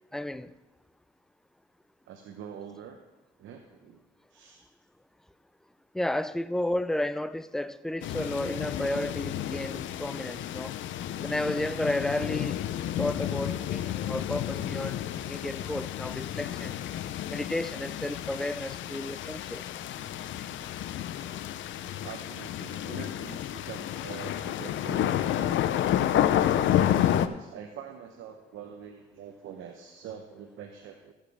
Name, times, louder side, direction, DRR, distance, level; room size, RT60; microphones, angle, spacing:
voice 1, 0.1-0.6 5.9-10.7 11.2-12.6 13.0-16.7 17.3-19.7, left 1 dB, ahead, 0.4 m, -32 dB
voice 2, 2.0-3.0 3.4-4.0 4.3-4.6 22.0-25.6 26.1-31.1, right 8 dB, 85° right, 0.9 m, -44 dB
sound 1, 8.0-27.3, left 11 dB, 75° left, 0.6 m, -30 dB
15.5 x 7.4 x 3.4 m
cardioid pair, 90°, 20 cm